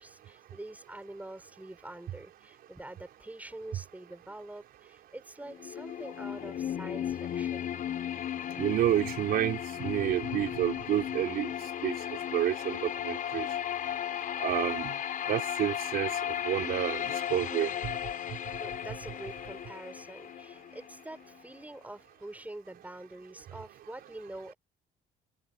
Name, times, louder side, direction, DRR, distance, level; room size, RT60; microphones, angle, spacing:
voice 1, 0.0-7.7 18.3-24.5, right 1 dB, 10° right, 7.5 m, -46 dB
sound 1, 5.5-21.4, left 10 dB, 55° left, 5.6 m, -35 dB
voice 2, 8.6-11.5 11.8-11.9 12.3-13.5 14.4-14.9 15.3-16.1 16.4-18.0, right 12 dB, 65° right, 4.3 m, -29 dB
open air
cardioid pair, 110°, 17 cm